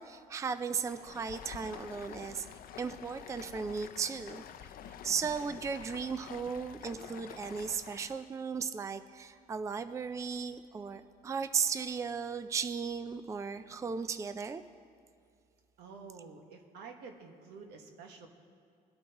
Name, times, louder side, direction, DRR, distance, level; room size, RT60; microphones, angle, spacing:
voice 1, 0.0-2.5 2.8-4.4 5.0-14.6, right 6 dB, 20° right, 10 dB, 0.4 m, -36 dB
Stream, 0.7-8.3, left 9 dB, 60° left, 0.5 m, -48 dB
voice 2, 15.8-18.3, right 5 dB, 80° right, 3 dB, 1.4 m, -49 dB
22.5 x 8.8 x 3.0 m, 2.3 s
cardioid pair, 110°, 17 cm